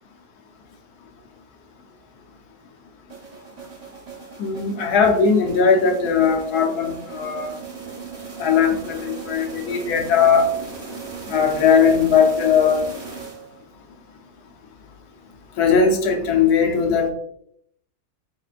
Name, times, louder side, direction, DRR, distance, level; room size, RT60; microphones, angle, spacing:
sound 1, 3.1-13.8, right 5 dB, 35° right, 0.6 m, -37 dB
voice 1, 4.4-7.5 8.4-10.5 11.3-12.8 15.6-17.1, left 6 dB, 75° left, 3 dB, 1.2 m, -18 dB
4.4 x 4.1 x 2.4 m, 0.71 s
omnidirectional pair, 1.7 m